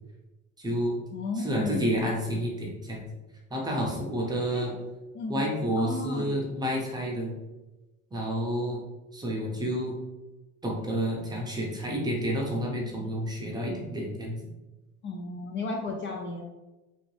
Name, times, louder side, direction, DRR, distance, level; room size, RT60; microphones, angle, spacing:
voice 1, 0.6-1.0 1.4-3.1 3.5-4.7 5.3-7.3 8.1-8.8 9.1-9.9 10.6-14.4, equal, 15° right, -2 dB, 0.6 m, -30 dB
voice 2, 1.1-2.0 4.5-4.7 5.1-5.5 5.8-6.3 15.0-16.4, left 3 dB, 35° left, 2 dB, 0.4 m, -33 dB
3.1 x 2.8 x 3.1 m, 1.1 s
cardioid pair, 155°, 32 cm